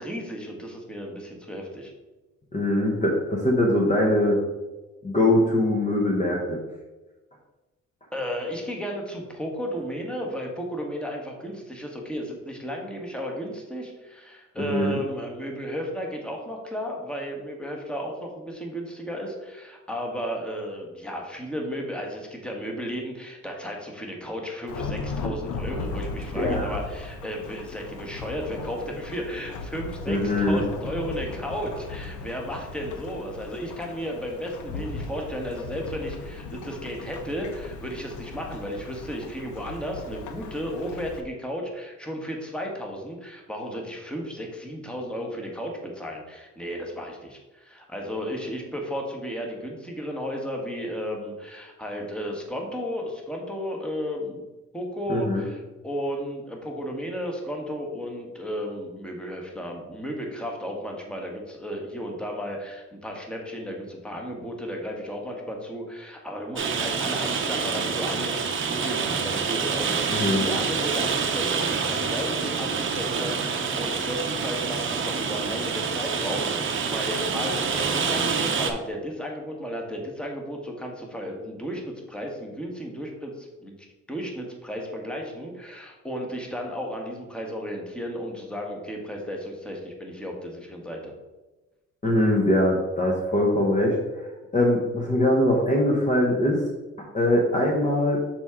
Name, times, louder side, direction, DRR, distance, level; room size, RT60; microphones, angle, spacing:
voice 1, 0.0-1.9 8.1-54.4 54.7-91.1, equal, 5° left, 0 dB, 1.3 m, -34 dB
voice 2, 2.5-4.4 5.0-6.6 14.6-15.0 26.3-26.7 30.1-30.6 55.1-55.4 70.1-70.4 92.0-94.3 94.5-96.6 97.0-98.2, left 1 dB, 25° left, -1 dB, 1.0 m, -22 dB
Thunderstorm / Rain, 24.7-41.2, left 3 dB, 75° left, 0.8 m, -37 dB
Rain, 66.6-78.7, right 5 dB, 40° right, 0.8 m, -27 dB
6.1 x 4.5 x 3.6 m, 1.1 s
cardioid pair, 90°, 30 cm